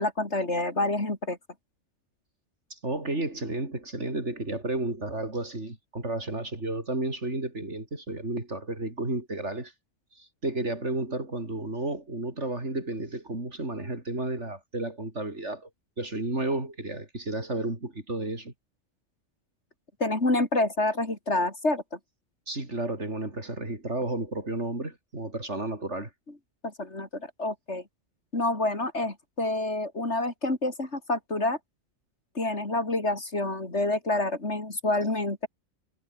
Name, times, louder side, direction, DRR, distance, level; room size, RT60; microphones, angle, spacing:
voice 1, 0.0-1.4 20.0-22.0 26.6-27.8 28.3-31.6 32.3-35.5, left 2 dB, 55° left, 4.9 m, -28 dB
voice 2, 2.7-9.7 10.1-15.7 16.0-18.5 22.5-26.1, right 2 dB, 55° right, 5.0 m, -32 dB
omnidirectional pair, 1.4 m